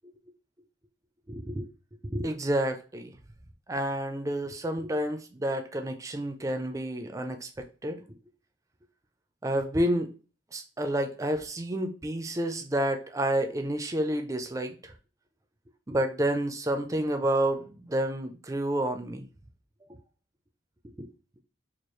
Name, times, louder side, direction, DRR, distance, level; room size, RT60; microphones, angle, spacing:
voice 1, 1.3-1.7 2.0-3.1 3.7-8.0 9.4-10.1 10.5-14.9 15.9-19.3 21.0-21.1, right 1 dB, 15° right, 6 dB, 0.4 m, -29 dB
4.5 x 2.4 x 3.1 m, 0.36 s
head